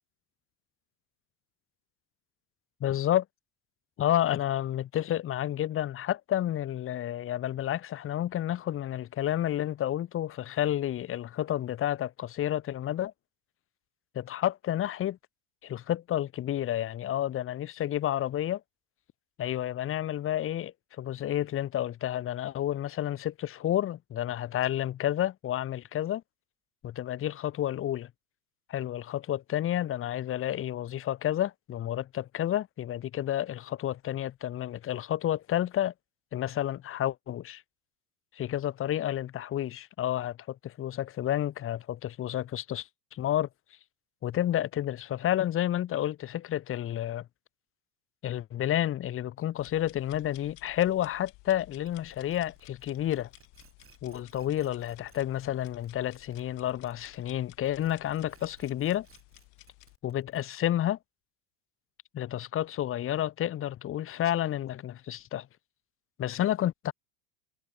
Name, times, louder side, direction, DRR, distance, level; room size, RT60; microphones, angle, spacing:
voice 1, 2.8-3.2 4.0-13.1 14.1-15.2 15.6-18.6 19.4-26.2 26.8-28.1 28.7-35.9 36.3-37.6 38.3-43.5 44.2-47.3 48.2-53.3 54.0-59.1 60.0-61.0 62.1-65.5 66.2-66.9, left 12 dB, 25° left, 0.8 m, -30 dB
sound 1, 49.6-60.0, left 25 dB, 60° left, 4.0 m, -56 dB
sound 2, 51.9-57.4 57.6-60.7, right 7 dB, 25° right, 6.3 m, -61 dB
supercardioid pair, 110°, 49 cm